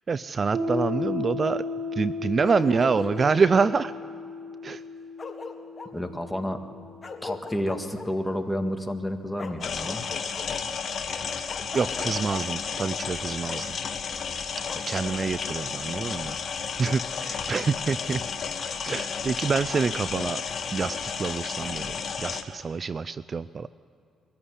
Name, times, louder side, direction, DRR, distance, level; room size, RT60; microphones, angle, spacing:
voice 1, 0.1-1.6 2.0-3.9 4.6-4.8 11.7-13.8 14.7-16.4 16.8-18.2 18.8-20.4 20.7-23.7, right 5 dB, 40° right, 16 dB, 0.4 m, -26 dB
Piano, 0.5-7.8, left 3 dB, 55° right, 6.7 m, -35 dB
Bark, 2.4-3.8 4.8-4.9 5.2-5.9 7.0-8.1 9.4-10.4 11.5-12.4 13.5-13.6 14.6-14.8, left 3 dB, 30° left, 1.7 m, -39 dB
voice 2, 5.9-6.6 7.2-10.1 22.3-22.4, left 1 dB, 5° left, 5 dB, 1.8 m, -30 dB
sound 1, 9.6-22.4, left 6 dB, 50° left, 1.5 m, -32 dB
23.0 x 14.0 x 10.0 m, 2.4 s
cardioid pair, 90°, 0 cm